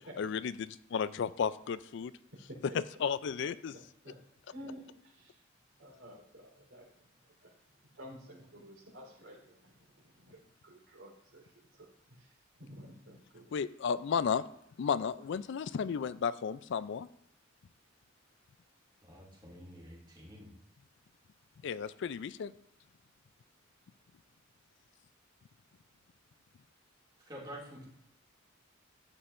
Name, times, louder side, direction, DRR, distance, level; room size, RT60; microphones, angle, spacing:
voice 1, 0.2-2.1 3.0-3.7 13.5-14.4 14.8-17.1 21.6-22.5, left 6 dB, 65° left, 16 dB, 0.4 m, -33 dB
voice 2, 4.5-5.4 5.8-6.9 7.4-7.5 7.9-9.7 10.2-11.5 11.8-11.9 12.2-12.3 12.6-13.6, equal, 80° right, -1 dB, 3.8 m, -51 dB
voice 3, 19.0-20.5 27.3-27.8, equal, 25° right, -4 dB, 2.4 m, -48 dB
13.0 x 8.7 x 2.6 m, 0.73 s
head